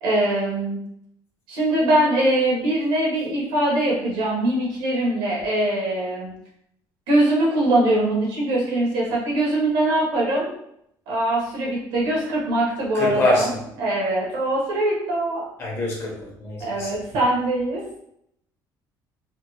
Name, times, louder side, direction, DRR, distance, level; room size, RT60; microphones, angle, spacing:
voice 1, 0.0-0.8 1.5-6.3 7.1-10.5 11.1-13.5 13.8-15.4 16.6-17.8, right 1 dB, 80° right, -3 dB, 1.3 m, -22 dB
voice 2, 12.9-13.6 15.6-16.9, left 1 dB, 35° left, -2 dB, 0.9 m, -24 dB
3.4 x 2.2 x 3.1 m, 0.75 s
cardioid pair, 155°, 8 cm